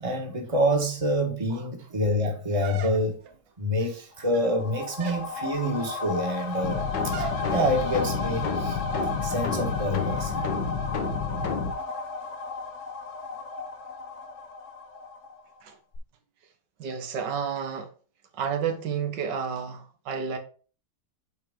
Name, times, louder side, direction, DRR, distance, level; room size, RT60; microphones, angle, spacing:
voice 1, 0.0-3.2 3.6-8.8 9.2-10.5, equal, 20° right, 1.4 m, -27 dB
sound 1, 2.6-3.4 4.2-4.6 5.0-5.3 7.1-7.5, right 8 dB, 70° right, 1.3 m, -38 dB
sound 2, 4.2-15.6 15.9-16.0, left 3 dB, 50° left, 1.1 m, -34 dB
sound 3, 6.6-11.7, left 5 dB, 90° left, 1.8 m, -30 dB
voice 2, 16.8-17.9 18.3-20.4, right 7 dB, 85° right, 1.7 m, -31 dB
8.1 x 4.6 x 3.7 m
omnidirectional pair, 1.8 m